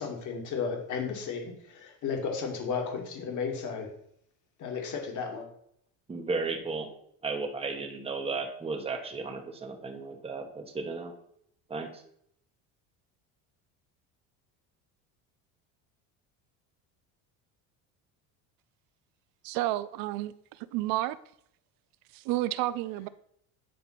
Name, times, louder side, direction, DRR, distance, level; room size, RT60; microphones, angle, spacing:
voice 1, 0.0-3.9 4.6-5.5, left 5 dB, 50° left, 2.1 m, -34 dB
voice 2, 6.1-6.9 7.2-11.1 11.7-12.0, right 4 dB, 15° right, 1.1 m, -34 dB
voice 3, 19.4-21.2 22.1-23.1, right 15 dB, 70° right, 0.5 m, -31 dB
9.3 x 3.4 x 5.7 m
cardioid pair, 125°, 37 cm